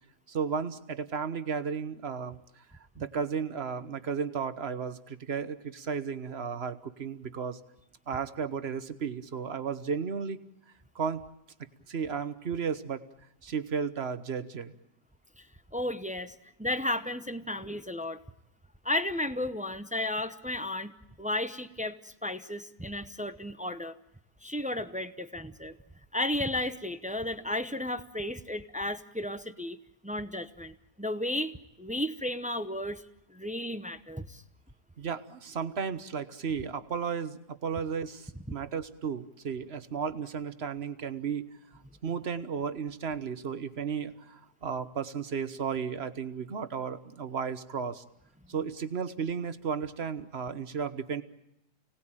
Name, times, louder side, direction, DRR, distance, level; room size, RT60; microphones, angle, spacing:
voice 1, 0.3-2.4 3.0-7.6 8.1-10.4 10.9-11.2 11.9-13.0 13.4-14.7 35.0-41.4 42.0-48.0 48.5-51.2, right 6 dB, 45° right, 11 dB, 1.3 m, -34 dB
voice 2, 15.7-18.2 18.8-20.9 21.2-24.0 24.4-25.8 26.1-29.8 30.0-33.0 33.3-34.4, left 1 dB, 10° right, 10 dB, 0.5 m, -33 dB
29.5 x 19.0 x 9.0 m, 0.85 s
omnidirectional pair, 1.7 m